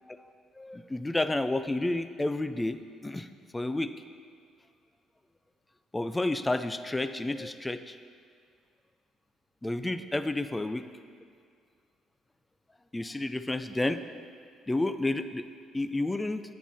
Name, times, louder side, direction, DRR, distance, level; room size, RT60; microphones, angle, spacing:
voice 1, 0.1-3.3 3.5-3.9 5.9-7.9 9.6-10.8 12.9-14.0 14.7-15.4 15.7-16.4, left 2 dB, 10° left, 10 dB, 0.4 m, -30 dB
10.0 x 9.1 x 4.1 m, 2.1 s
cardioid pair, 135°, 0 cm